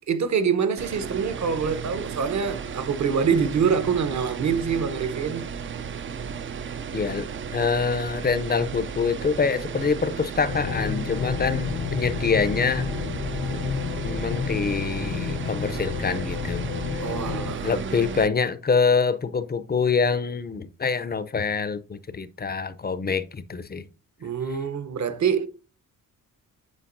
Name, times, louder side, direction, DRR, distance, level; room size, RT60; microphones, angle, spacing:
voice 1, 0.1-5.5 17.0-18.3 24.2-25.5, right 6 dB, 50° right, 0.9 m, -25 dB
sound 1, 0.8-18.3, right 6 dB, 35° right, 0.4 m, -34 dB
voice 2, 6.9-7.3 7.5-12.9 14.0-16.7 16.9-17.1 17.6-23.9, left 5 dB, 25° left, 0.5 m, -25 dB
sound 2, 10.5-17.6, left 6 dB, 65° left, 0.8 m, -30 dB
8.6 x 4.4 x 2.6 m
cardioid pair, 85°, 35 cm